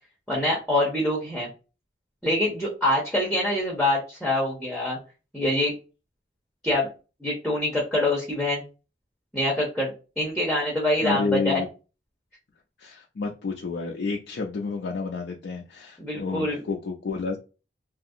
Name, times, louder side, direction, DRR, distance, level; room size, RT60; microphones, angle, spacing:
voice 1, 0.3-1.5 2.2-5.0 5.3-5.7 6.6-6.9 7.2-8.6 9.3-9.9 10.2-11.6 16.0-16.6, left 1 dB, ahead, 0.7 m, -25 dB
voice 2, 11.0-11.7 12.8-17.4, left 4 dB, 70° left, 0.4 m, -30 dB
2.7 x 2.4 x 2.6 m
head